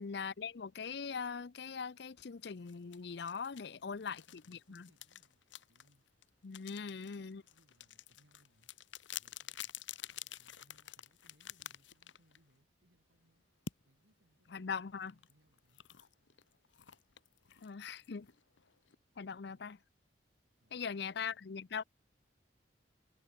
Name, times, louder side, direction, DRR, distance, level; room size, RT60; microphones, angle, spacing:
voice 1, 0.0-4.9 6.4-7.4 14.5-15.1 17.6-18.3 19.2-19.8 20.7-21.8, left 6 dB, 60° left, 0.5 m, -41 dB
sound 1, 2.7-12.6 13.7-13.8 15.1-19.0, left 10 dB, 85° left, 1.2 m, -50 dB
voice 2, 3.5-6.0 6.6-8.7 9.2-9.7 10.1-13.4 13.8-15.8 19.3-19.7 20.6-21.9, right 1 dB, 75° right, 5.6 m, -73 dB
head